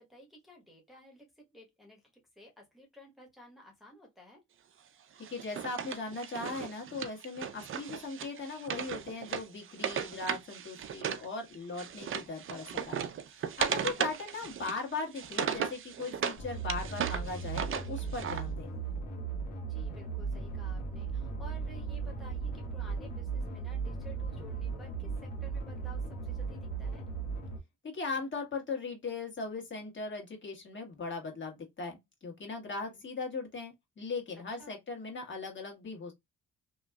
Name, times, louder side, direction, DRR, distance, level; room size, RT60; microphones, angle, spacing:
voice 1, 0.0-2.0 2.3-4.4 13.9-14.1 19.7-27.1 32.7-33.1 34.3-34.8, left 1 dB, ahead, 1.1 m, -54 dB
Wood, 5.2-11.3 11.5-16.4 16.7-18.4, right 8 dB, 45° right, 0.5 m, -36 dB
voice 2, 5.3-13.1 13.4-18.7 27.8-36.1, left 3 dB, 40° left, 1.5 m, -39 dB
sound 1, 16.4-27.6, right 5 dB, 80° left, 1.4 m, -37 dB
2.9 x 2.6 x 2.3 m
cardioid pair, 90°, 30 cm